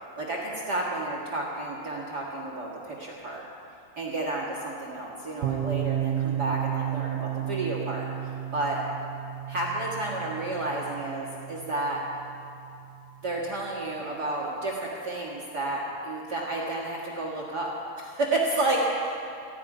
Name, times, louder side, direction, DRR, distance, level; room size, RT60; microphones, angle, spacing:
voice 1, 0.2-3.4 3.9-8.1 8.5-8.8 9.5-12.0 13.2-17.7 18.0-19.2, right 2 dB, 45° right, -3 dB, 1.4 m, -31 dB
sound 1, 5.4-13.1, right 11 dB, 70° right, 2.1 m, -33 dB
18.5 x 14.5 x 5.0 m, 2.6 s
omnidirectional pair, 4.5 m